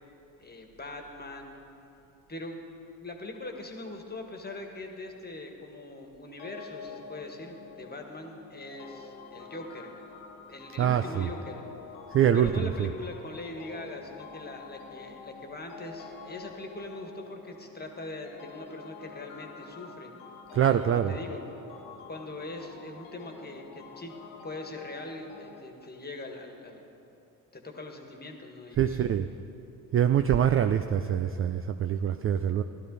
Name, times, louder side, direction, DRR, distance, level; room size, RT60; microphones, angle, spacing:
voice 1, 0.4-1.6 2.3-2.6 3.0-9.9 10.5-11.7 12.3-20.1 20.6-21.4 22.1-24.1 24.4-26.9 27.5-29.1, left 2 dB, 20° left, 3 dB, 1.8 m, -41 dB
sound 1, 6.4-25.6, left 5 dB, 75° left, 1.5 m, -47 dB
voice 2, 10.8-11.3 12.1-12.9 20.5-21.1 28.8-29.3 29.9-32.6, right 9 dB, 30° right, 9 dB, 0.4 m, -24 dB
15.5 x 12.0 x 4.0 m, 2.8 s
hypercardioid pair, 60°, 48 cm